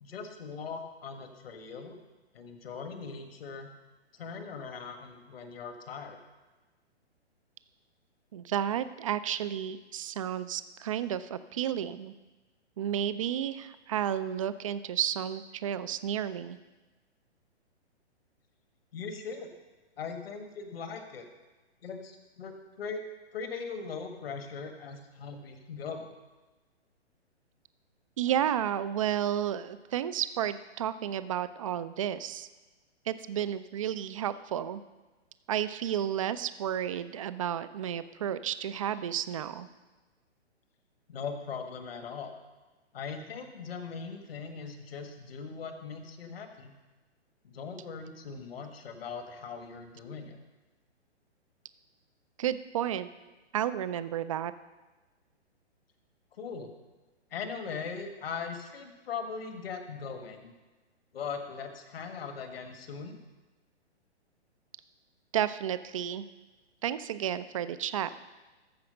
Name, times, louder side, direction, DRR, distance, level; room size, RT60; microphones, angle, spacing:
voice 1, 0.0-2.0 2.3-3.7 4.1-6.2 18.9-19.5 20.0-21.3 21.8-23.0 23.3-26.1 41.1-42.3 42.9-46.7 47.4-50.4 56.3-56.7 57.3-60.5 61.1-63.2, left 5 dB, 60° left, 6 dB, 1.6 m, -40 dB
voice 2, 8.3-12.1 12.8-16.6 28.2-32.5 33.1-34.8 35.5-39.7 52.4-53.1 53.5-54.5 65.3-66.2 66.8-68.1, right 10 dB, 30° right, 14 dB, 0.4 m, -32 dB
14.0 x 4.8 x 6.4 m, 1.2 s
figure-of-eight pair, 130°, 34 cm